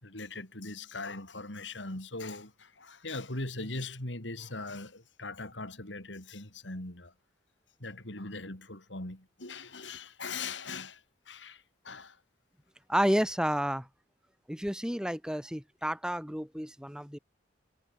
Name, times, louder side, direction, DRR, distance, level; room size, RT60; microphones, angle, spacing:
voice 1, 0.0-7.1 7.8-11.0 11.3-12.2, left 3 dB, 80° left, 4.4 m, -40 dB
voice 2, 12.9-13.9 14.5-17.2, equal, 5° right, 4.0 m, -30 dB
head